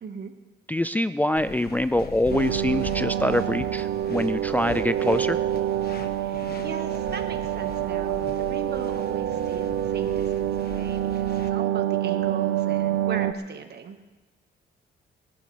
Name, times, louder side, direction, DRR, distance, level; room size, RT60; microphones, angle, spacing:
voice 1, 0.0-0.3 6.2-14.0, right 6 dB, 55° right, 6 dB, 1.7 m, -38 dB
voice 2, 0.7-5.4, left 1 dB, 10° left, 12 dB, 0.4 m, -25 dB
sound 1, 1.4-11.5, left 5 dB, 50° left, 1.4 m, -41 dB
sound 2, 2.3-13.3, right 12 dB, 75° right, 0.7 m, -27 dB
28.5 x 11.5 x 3.4 m, 1.2 s
cardioid pair, 90°, 20 cm